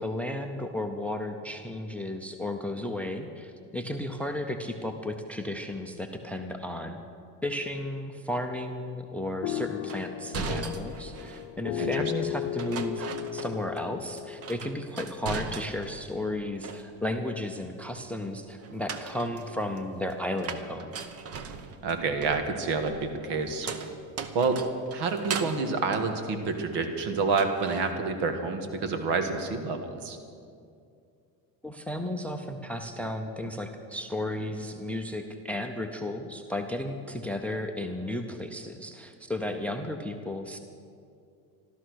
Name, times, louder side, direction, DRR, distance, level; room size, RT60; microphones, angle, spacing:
voice 1, 0.0-7.0 7.4-13.1 13.3-21.0 31.6-40.6, left 1 dB, 5° left, 7 dB, 0.6 m, -34 dB
sound 1, 9.4-15.5, left 13 dB, 60° left, 0.7 m, -36 dB
sound 2, 9.9-11.5 12.6-13.9 14.2-16.0 16.4-17.2 18.6-26.9 27.3-27.9, right 5 dB, 35° right, 0.9 m, -39 dB
voice 2, 21.8-23.7 24.3-24.6 24.9-30.2, right 4 dB, 65° right, 6 dB, 1.9 m, -28 dB
14.0 x 13.0 x 6.4 m, 2.4 s
cardioid pair, 135°, 44 cm